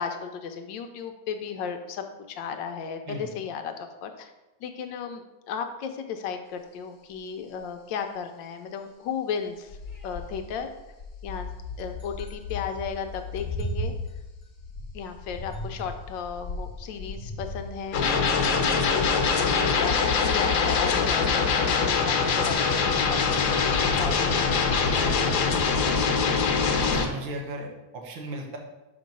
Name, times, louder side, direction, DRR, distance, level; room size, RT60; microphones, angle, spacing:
voice 1, 0.0-4.3 4.6-9.8 10.0-10.7 11.2-11.5 11.8-13.9 14.9-18.1 18.5-25.6, left 6 dB, 75° left, 6 dB, 1.2 m, -35 dB
sound 1, 9.7-19.0 20.7-20.8, left 2 dB, 40° left, 1.1 m, -37 dB
sound 2, 17.9-27.1, left 5 dB, 60° left, 1.3 m, -23 dB
voice 2, 26.6-28.6, right 2 dB, 80° right, 1 dB, 1.9 m, -36 dB
6.0 x 4.6 x 5.2 m, 1.0 s
omnidirectional pair, 2.2 m